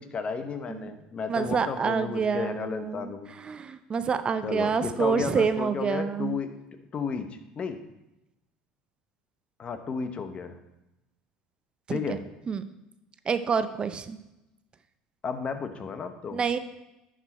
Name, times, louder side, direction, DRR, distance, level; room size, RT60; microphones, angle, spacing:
voice 1, 0.0-3.3 4.4-6.5 6.9-7.3 7.6-7.8 9.6-10.6 11.9-12.2 15.2-16.4, left 5 dB, 35° left, 9 dB, 0.9 m, -33 dB
voice 2, 1.3-3.1 3.4-6.4 11.9-12.0 12.5-12.6 13.3-14.2 16.3-16.6, right 6 dB, 30° right, 11 dB, 0.6 m, -27 dB
10.5 x 5.1 x 4.2 m, 0.95 s
supercardioid pair, 90°, 3 cm